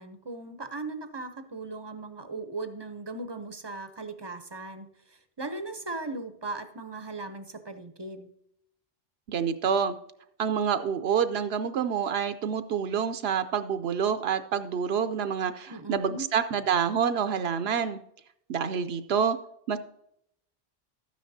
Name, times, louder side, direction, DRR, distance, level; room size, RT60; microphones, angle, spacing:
voice 1, 0.0-8.3 15.7-16.3, right 3 dB, 30° right, 10 dB, 0.6 m, -38 dB
voice 2, 9.3-9.9 10.4-18.0 18.5-19.4 19.7-19.8, right 7 dB, 80° right, 9 dB, 0.8 m, -27 dB
12.5 x 9.4 x 2.7 m, 0.75 s
omnidirectional pair, 1.0 m